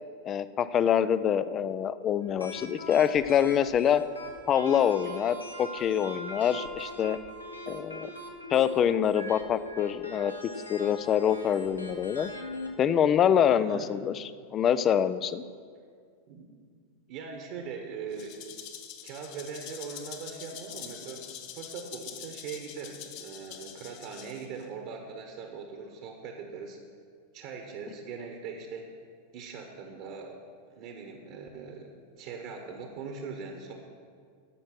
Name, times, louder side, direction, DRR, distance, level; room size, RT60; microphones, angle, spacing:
voice 1, 0.2-4.0 4.5-7.2 7.7-8.1 8.5-10.3 10.7-12.3 12.8-15.4, left 9 dB, 30° left, 14 dB, 0.4 m, -25 dB
sound 1, 2.2-12.7, equal, 80° left, 1.2 m, -42 dB
voice 2, 13.5-13.9 16.3-16.5 17.1-18.4 19.0-26.8 27.3-28.9 29.3-30.4 30.7-33.7, right 5 dB, 45° right, 3 dB, 1.3 m, -41 dB
Rattle (instrument), 18.1-24.6, left 9 dB, 45° left, 1.0 m, -45 dB
13.0 x 6.4 x 6.0 m, 2.1 s
figure-of-eight pair, 90°, 0 cm